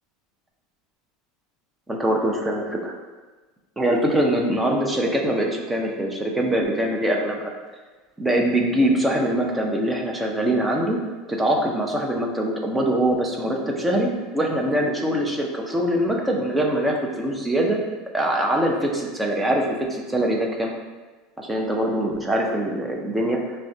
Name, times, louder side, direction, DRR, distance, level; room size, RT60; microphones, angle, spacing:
voice 1, 1.9-3.0 3.8-7.5 8.2-11.0 11.3-17.8 18.1-20.7 21.4-23.4, right 1 dB, 10° right, 0 dB, 0.5 m, -23 dB
5.7 x 2.1 x 2.6 m, 1.3 s
supercardioid pair, 140°, 0 cm